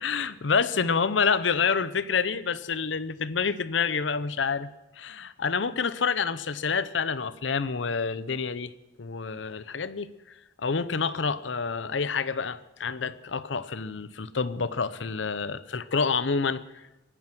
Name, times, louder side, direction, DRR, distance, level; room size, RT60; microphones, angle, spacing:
voice 1, 0.0-4.7 5.0-8.7 9.0-10.1 10.6-16.6, left 5 dB, 85° left, 16 dB, 0.8 m, -28 dB
23.5 x 10.0 x 6.1 m, 0.97 s
head